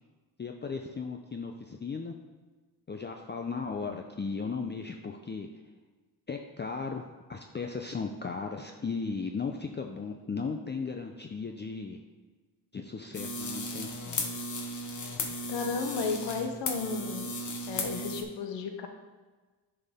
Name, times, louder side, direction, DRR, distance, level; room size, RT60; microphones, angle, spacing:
voice 1, 0.4-2.1 2.9-5.5 6.3-12.0 12.7-14.2, left 4 dB, 25° left, 4 dB, 0.6 m, -36 dB
sound 1, 13.1-18.2, left 1 dB, 45° left, 1.1 m, -35 dB
voice 2, 15.5-17.4 17.7-18.9, left 5 dB, 85° left, 5 dB, 0.9 m, -33 dB
9.5 x 5.6 x 3.6 m, 1.3 s
cardioid pair, 75°, 42 cm